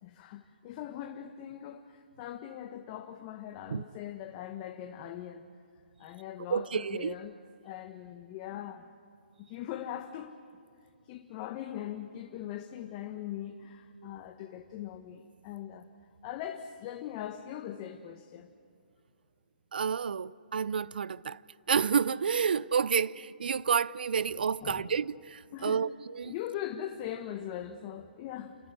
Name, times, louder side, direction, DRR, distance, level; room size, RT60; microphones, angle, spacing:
voice 1, 0.0-5.5 6.0-7.3 7.6-8.9 9.4-10.4 11.1-15.9 16.2-18.5 24.6-24.9 25.5-25.9 26.2-28.6, left 11 dB, 35° left, 1.3 m, -41 dB
voice 2, 6.5-7.1 19.7-21.4 21.7-26.3, right 6 dB, 70° right, 0.6 m, -30 dB
28.0 x 18.0 x 10.0 m
hypercardioid pair, 135°, 5 cm